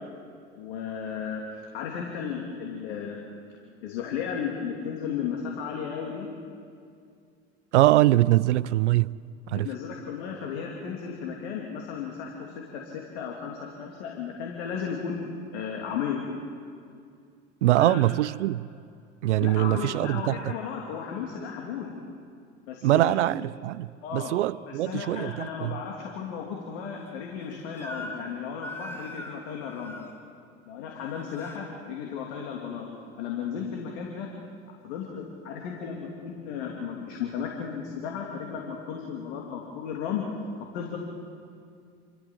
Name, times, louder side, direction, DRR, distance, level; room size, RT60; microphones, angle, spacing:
voice 1, 0.6-3.2 3.8-6.3 9.5-15.2 15.5-16.2 17.8-18.0 19.4-21.9 22.7-23.2 24.0-24.4 24.7-30.0 30.7-32.9 33.2-34.3 34.8-40.3 40.7-41.0, left 7 dB, 70° left, 2.9 m, -34 dB
voice 2, 7.7-9.2 9.5-9.7 17.6-18.7 19.2-20.5 22.8-25.8, right 15 dB, 85° right, 0.5 m, -23 dB
Crying sobbing / Screech, 27.8-28.3 28.6-30.1 30.9-31.6, equal, 5° left, 4.3 m, -41 dB
28.0 x 13.5 x 7.5 m
hypercardioid pair, 75°, 34 cm